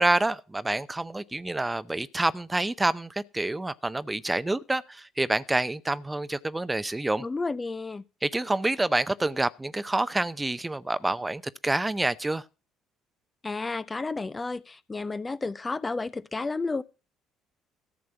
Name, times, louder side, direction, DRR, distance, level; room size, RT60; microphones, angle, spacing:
voice 1, 0.0-7.3 8.2-12.4, right 2 dB, 15° right, 0.7 m, -27 dB
voice 2, 7.2-8.0 13.4-16.8, left 3 dB, 25° left, 0.5 m, -31 dB
14.0 x 7.5 x 5.9 m
figure-of-eight pair, 50°, 0 cm